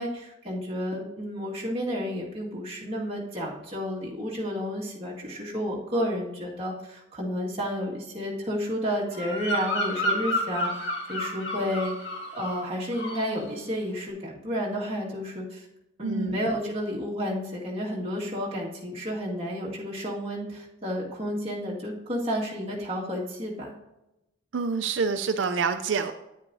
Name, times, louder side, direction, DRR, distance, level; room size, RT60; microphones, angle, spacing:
voice 1, 0.0-11.9 12.3-15.6 16.0-23.7, equal, 30° right, -5 dB, 2.0 m, -31 dB
Bird vocalization bird call bird song, 9.1-12.7 12.9-13.3, left 1 dB, 65° left, 1.9 m, -30 dB
voice 2, 16.0-16.4 24.5-26.1, right 5 dB, 80° right, 7 dB, 0.5 m, -27 dB
9.8 x 9.5 x 2.7 m, 0.93 s
head